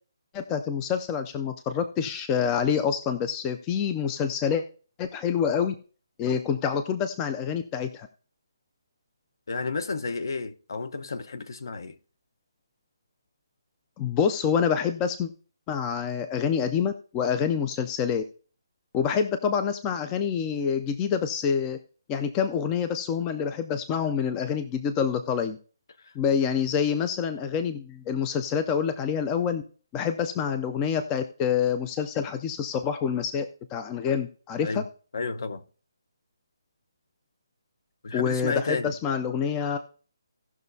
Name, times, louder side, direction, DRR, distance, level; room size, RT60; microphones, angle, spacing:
voice 1, 0.3-4.6 5.0-5.7 6.2-8.1 14.0-15.3 15.7-18.2 18.9-21.8 22.1-25.6 26.2-29.6 29.9-34.8 38.1-39.8, left 7 dB, 10° left, 0.4 m, -27 dB
voice 2, 9.5-12.0 26.0-26.1 34.6-34.8 35.1-35.6 38.0-38.9, left 4 dB, 55° left, 0.9 m, -31 dB
17.0 x 6.0 x 2.7 m
hypercardioid pair, 170°, 2 cm